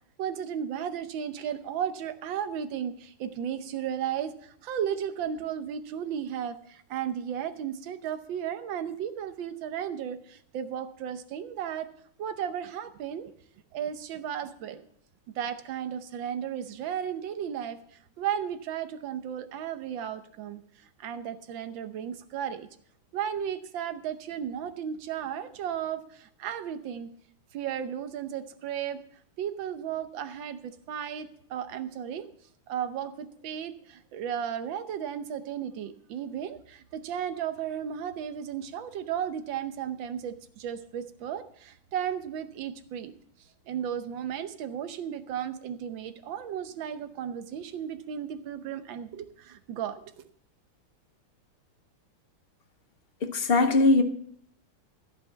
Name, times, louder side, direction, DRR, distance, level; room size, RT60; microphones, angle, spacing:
voice 1, 0.2-11.9 12.2-13.3 13.7-14.9 15.3-17.8 18.2-20.6 21.0-22.7 23.1-27.1 27.5-29.0 29.4-32.3 32.7-43.1 43.7-50.3, right 9 dB, 70° right, 10 dB, 1.5 m, -34 dB
voice 2, 53.2-54.0, left 2 dB, 60° left, 7 dB, 0.6 m, -21 dB
14.5 x 5.7 x 7.2 m, 0.63 s
omnidirectional pair, 2.3 m